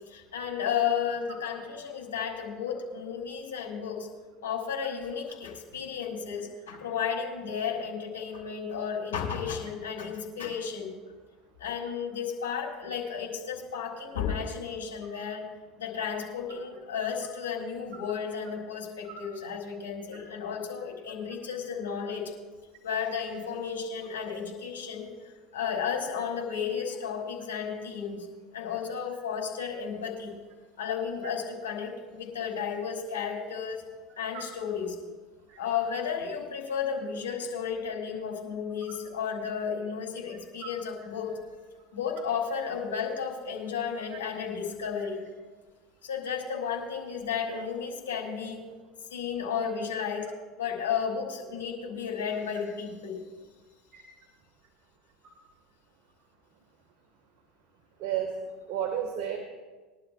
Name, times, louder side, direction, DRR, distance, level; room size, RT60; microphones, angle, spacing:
voice 1, 0.1-4.1 4.4-10.9 11.6-15.5 15.8-22.3 22.8-25.1 25.5-28.3 28.5-30.3 30.8-33.8 34.2-35.0 35.6-41.3 41.9-45.2 46.0-48.6 49.1-50.3 50.6-53.2, left 7 dB, 80° left, -1 dB, 3.3 m, -33 dB
voice 2, 58.0-58.3 58.7-59.4, right 10 dB, 60° right, 3 dB, 1.7 m, -32 dB
22.0 x 11.5 x 2.5 m, 1.3 s
hypercardioid pair, 75°, 0 cm